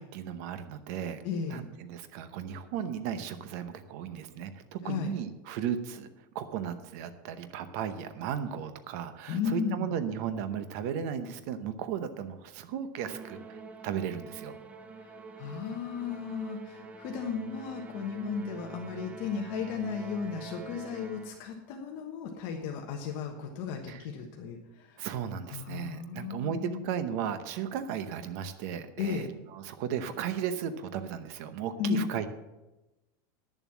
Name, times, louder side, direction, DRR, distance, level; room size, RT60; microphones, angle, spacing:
voice 1, 0.0-1.2 1.5-6.1 6.3-13.6 13.8-14.6 23.9-24.0 25.0-29.3 29.5-32.3, right 8 dB, 50° right, 10 dB, 0.8 m, -35 dB
voice 2, 1.2-1.6 4.8-5.1 9.3-9.9 15.0-25.1 25.5-26.8 29.0-29.3 31.8-32.0, left 6 dB, 45° left, 1 dB, 1.3 m, -35 dB
Musical instrument, 13.1-21.5, right 4 dB, 10° right, 0.6 m, -46 dB
10.5 x 7.2 x 7.2 m, 1.0 s
supercardioid pair, 170°, 11 cm